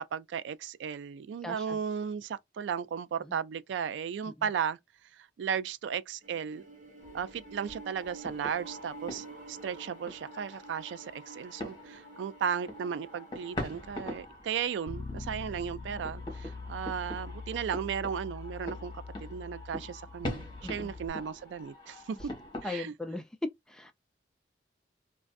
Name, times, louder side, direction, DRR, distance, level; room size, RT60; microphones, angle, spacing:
voice 1, 0.0-4.8 5.1-6.6 7.1-18.9 19.2-22.3 22.6-22.9, right 7 dB, 90° right, 0.3 m, -35 dB
voice 2, 1.4-1.8 3.3-3.4 20.6-20.9 22.6-23.2 23.7-23.9, left 2 dB, 5° left, 0.3 m, -39 dB
sound 1, 6.2-13.9, right 3 dB, 45° right, 0.9 m, -50 dB
sound 2, 7.0-22.7, left 1 dB, 25° left, 1.1 m, -44 dB
Bass guitar, 14.9-21.1, left 4 dB, 70° left, 0.6 m, -43 dB
2.5 x 2.3 x 2.3 m
head